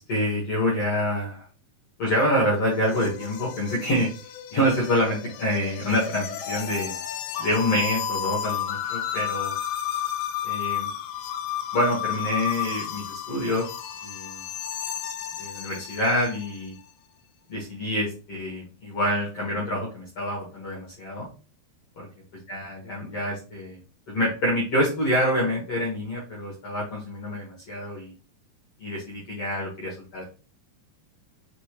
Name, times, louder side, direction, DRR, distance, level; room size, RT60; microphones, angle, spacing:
voice 1, 0.0-1.4 2.0-4.1 4.5-6.9 7.4-9.5 10.4-10.9 11.7-13.7 14.0-14.5 15.4-16.7 17.5-21.3 22.0-23.8 24.1-28.1 28.8-30.2, equal, 70° left, -5 dB, 1.4 m, -27 dB
sound 1, 2.1-16.7, left 10 dB, 90° left, 2.8 m, -32 dB
6.4 x 2.8 x 2.9 m, 0.35 s
omnidirectional pair, 4.9 m